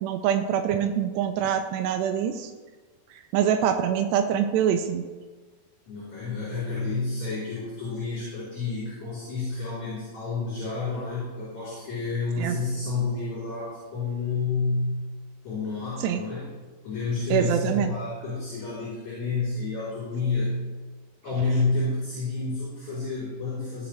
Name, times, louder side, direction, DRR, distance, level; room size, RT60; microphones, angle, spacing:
voice 1, 0.0-2.5 3.1-5.0 12.4-12.6 16.0-16.2 17.3-17.9, right 9 dB, 90° right, 5 dB, 2.7 m, -25 dB
voice 2, 5.9-14.9 15.4-16.5 16.8-20.6 21.2-23.9, left 3 dB, 45° left, -10 dB, 4.8 m, -29 dB
16.5 x 7.0 x 3.3 m, 1.4 s
omnidirectional pair, 4.8 m